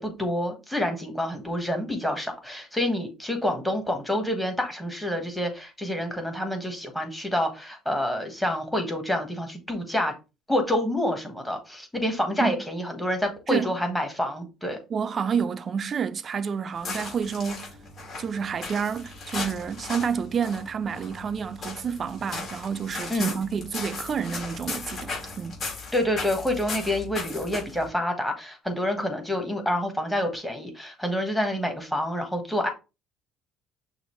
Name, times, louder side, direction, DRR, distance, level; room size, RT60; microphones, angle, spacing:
voice 1, 0.0-10.1 10.5-14.8 23.1-23.3 25.9-32.7, left 1 dB, 5° left, 1.3 m, -28 dB
voice 2, 14.9-17.8 18.2-25.6, right 6 dB, 40° right, 0.4 m, -29 dB
sound 1, 16.7-27.9, left 3 dB, 40° left, 2.6 m, -37 dB
6.2 x 2.7 x 3.1 m
cardioid pair, 120°, 0 cm